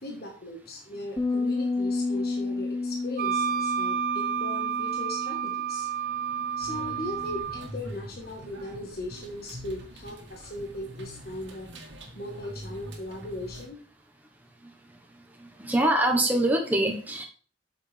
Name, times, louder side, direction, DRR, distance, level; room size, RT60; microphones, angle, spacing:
voice 1, 0.0-5.9 6.6-11.7 12.1-13.8, left 1 dB, 55° left, 0 dB, 1.5 m, -38 dB
sound 1, 1.2-7.4, left 3 dB, 20° left, 0.8 m, -32 dB
Wind instrument woodwind instrument, 3.2-7.7, right 8 dB, 45° right, 0.5 m, -30 dB
sound 2, 6.6-13.7, equal, 85° right, 1.9 m, -44 dB
voice 2, 15.6-17.2, right 1 dB, 10° right, 1 dB, 1.2 m, -24 dB
8.1 x 6.8 x 3.4 m, 0.40 s
head